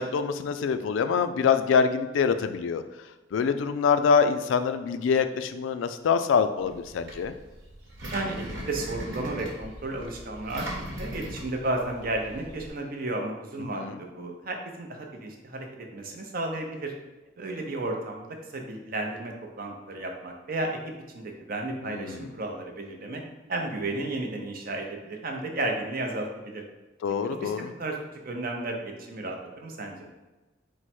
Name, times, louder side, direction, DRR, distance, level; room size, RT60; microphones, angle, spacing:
voice 1, 0.0-2.8 3.3-7.3 13.7-14.0 21.8-22.3 27.0-27.7, left 6 dB, 85° left, 10 dB, 0.3 m, -25 dB
Engine, 6.6-12.7, right 1 dB, 70° right, 1.2 m, -39 dB
voice 2, 8.1-10.7 11.0-15.7 15.9-16.9 17.4-18.3 18.5-20.8 21.1-23.2 23.5-26.6 27.2-28.0 28.2-30.0, right 2 dB, 50° right, 2 dB, 0.6 m, -33 dB
4.6 x 2.1 x 4.2 m, 1.1 s
head